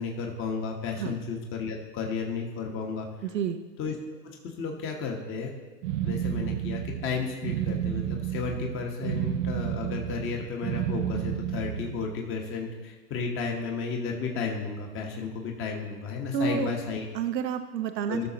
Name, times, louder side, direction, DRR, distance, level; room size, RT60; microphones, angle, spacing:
voice 1, 0.0-3.1 3.8-3.9 4.2-5.5 6.0-17.1 18.1-18.3, left 5 dB, 25° left, 1 dB, 1.3 m, -33 dB
voice 2, 3.2-3.6 16.3-16.7 17.1-18.3, right 7 dB, 85° right, 8 dB, 0.8 m, -29 dB
sound 1, 5.8-12.1, right 10 dB, 50° right, 0.6 m, -31 dB
16.5 x 6.3 x 2.9 m, 1.2 s
hypercardioid pair, 120°, 49 cm